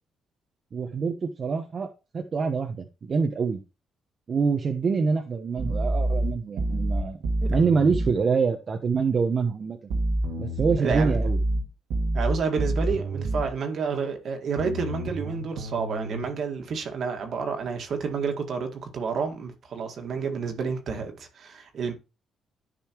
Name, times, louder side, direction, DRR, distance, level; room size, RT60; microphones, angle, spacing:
voice 1, 0.7-1.9 2.1-3.6 4.3-7.2 7.5-9.8 10.4-11.4, right 5 dB, 45° right, 1.0 m, -25 dB
sound 1, 5.6-8.2 9.9-13.5 14.6-16.2, right 1 dB, 85° right, 1.9 m, -27 dB
voice 2, 10.8-11.2 12.1-21.9, right 5 dB, 60° right, 1.9 m, -30 dB
10.5 x 5.5 x 3.0 m
cardioid pair, 90°, 0 cm